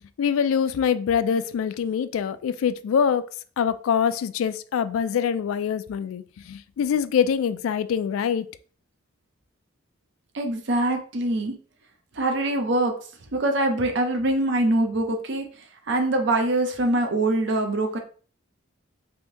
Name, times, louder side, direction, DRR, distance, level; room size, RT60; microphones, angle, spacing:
voice 1, 0.2-3.3 3.6-8.5, left 7 dB, 80° left, 0.3 m, -24 dB
voice 2, 10.3-11.5 12.2-12.9 13.3-15.4 15.9-18.0, right 1 dB, 60° right, 0.6 m, -23 dB
3.4 x 2.6 x 2.9 m
head